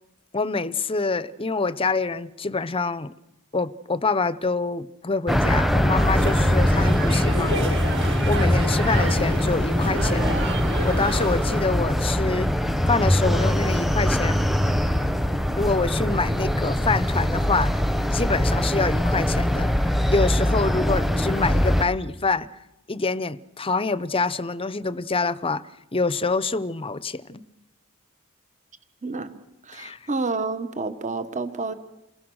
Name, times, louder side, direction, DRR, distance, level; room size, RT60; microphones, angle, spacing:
voice 1, 0.3-3.1 3.5-7.8 8.3-10.3 10.8-12.5 12.9-14.5 15.6-17.8 18.1-19.7 20.0-22.5 22.9-25.6 25.9-27.4 29.7-30.0, left 3 dB, 25° left, 0.8 m, -26 dB
sound 1, 5.3-21.8, equal, ahead, 1.3 m, -22 dB
sound 2, 6.0-11.6, right 1 dB, 55° right, 6.8 m, -30 dB
voice 2, 29.0-31.7, right 3 dB, 35° right, 1.5 m, -30 dB
29.0 x 22.5 x 6.4 m
head